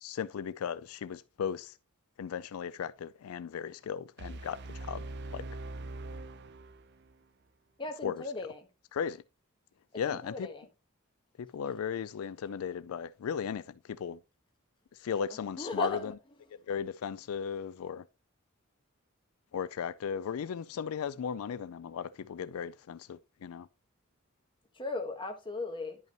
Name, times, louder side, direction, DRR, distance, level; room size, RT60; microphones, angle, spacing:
voice 1, 0.0-1.7 2.2-5.0 5.3-5.5 8.0-8.2 8.9-9.2 9.9-10.5 11.4-14.2 15.0-16.1 16.5-18.0 19.5-23.7, left 7 dB, 80° left, 0.4 m, -36 dB
sound 1, 4.2-7.2, right 2 dB, 55° right, 0.5 m, -42 dB
voice 2, 7.8-8.7 10.0-10.7 15.3-16.1 24.7-26.0, left 2 dB, 25° left, 1.4 m, -37 dB
10.5 x 5.5 x 2.9 m
head